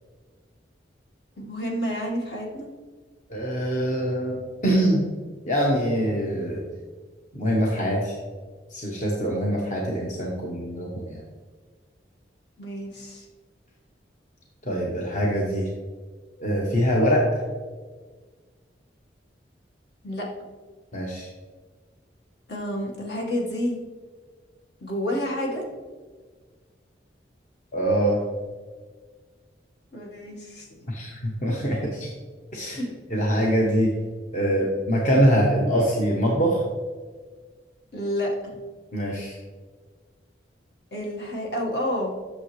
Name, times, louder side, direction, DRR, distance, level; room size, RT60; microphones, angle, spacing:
voice 1, 1.4-2.7 12.6-13.3 20.0-20.3 22.5-23.8 24.8-25.6 29.9-30.9 32.7-32.9 37.9-38.6 40.9-42.1, equal, 60° left, -1 dB, 1.6 m, -29 dB
voice 2, 3.3-5.0 5.4-6.6 7.3-8.1 8.7-11.2 14.6-15.7 16.4-17.4 20.9-21.3 27.7-28.2 30.9-32.1 32.5-32.8 33.1-33.9 34.3-36.6 38.9-39.4, equal, 40° left, -2 dB, 1.0 m, -23 dB
9.0 x 6.6 x 3.2 m, 1.5 s
head